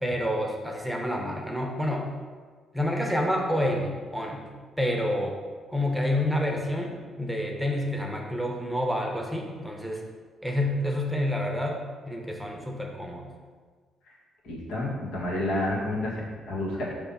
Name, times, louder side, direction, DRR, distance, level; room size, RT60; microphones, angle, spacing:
voice 1, 0.0-2.1 2.7-4.5 4.8-5.4 5.7-10.0 10.4-13.3, left 1 dB, ahead, 1 dB, 0.8 m, -28 dB
voice 2, 14.4-16.9, left 1 dB, 80° left, -4 dB, 1.7 m, -30 dB
5.4 x 3.5 x 5.5 m, 1.5 s
cardioid pair, 90°, 0 cm